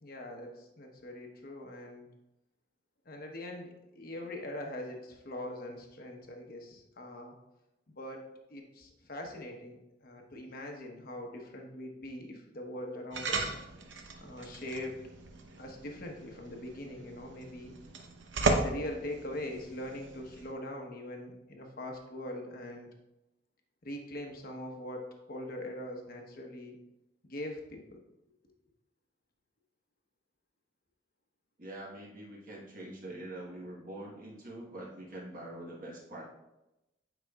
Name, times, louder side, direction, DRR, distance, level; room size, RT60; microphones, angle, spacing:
voice 1, 0.0-2.1 3.0-7.3 7.9-13.5 14.2-15.0 15.6-17.7 18.3-22.9 23.8-26.8 27.2-28.0, left 1 dB, 50° left, 2 dB, 1.0 m, -42 dB
sound 1, 13.1-20.5, right 3 dB, 70° right, 0.8 m, -36 dB
voice 2, 31.6-36.2, right 1 dB, 45° right, -3 dB, 1.2 m, -44 dB
9.1 x 5.2 x 2.4 m, 0.93 s
head